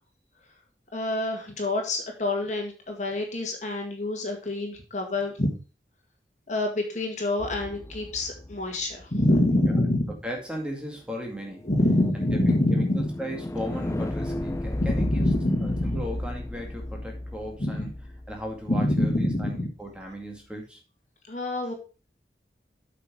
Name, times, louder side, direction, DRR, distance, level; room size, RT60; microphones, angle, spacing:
voice 1, 0.9-5.5 6.5-10.0 11.6-13.1 14.8-16.0 17.6-17.8 18.7-19.6 21.3-21.7, left 1 dB, 40° left, 3 dB, 1.9 m, -26 dB
sound 1, 7.4-9.5 11.4-19.4, left 1 dB, 15° left, 0.4 m, -34 dB
voice 2, 10.2-11.7 12.1-15.3 15.6-17.9 18.3-20.8, equal, 5° right, 0 dB, 2.2 m, -36 dB
8.1 x 6.1 x 4.7 m, 0.34 s
head